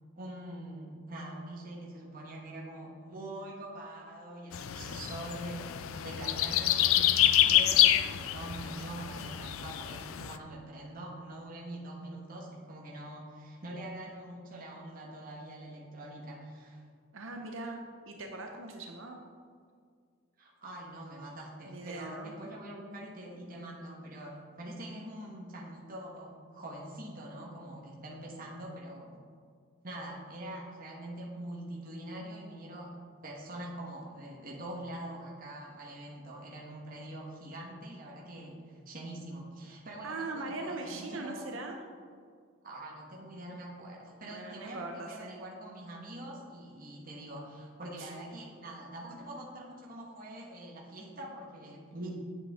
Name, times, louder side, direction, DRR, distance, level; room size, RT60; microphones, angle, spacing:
voice 1, 0.2-16.8 20.4-29.2 29.8-41.4 42.6-52.1, right 1 dB, 40° right, -3 dB, 1.3 m, -44 dB
sound 1, 4.5-10.4, left 12 dB, 75° left, 0.4 m, -27 dB
voice 2, 17.1-17.8 18.1-19.2 21.7-22.3 40.0-41.8 44.3-45.3 48.0-48.1, right 3 dB, 65° right, 3 dB, 0.7 m, -40 dB
8.7 x 7.9 x 3.6 m, 2.1 s
head